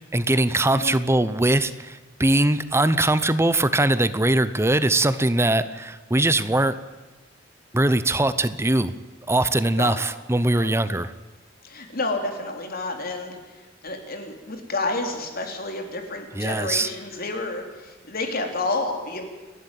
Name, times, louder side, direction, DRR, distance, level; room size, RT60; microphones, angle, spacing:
voice 1, 0.1-6.8 7.7-8.9 9.3-11.1 16.3-16.9, right 1 dB, 15° right, 14 dB, 0.8 m, -21 dB
voice 2, 9.7-10.0 10.5-10.7 11.6-13.4 13.8-19.2, left 2 dB, 50° left, 4 dB, 3.5 m, -30 dB
29.5 x 12.0 x 9.3 m, 1.2 s
head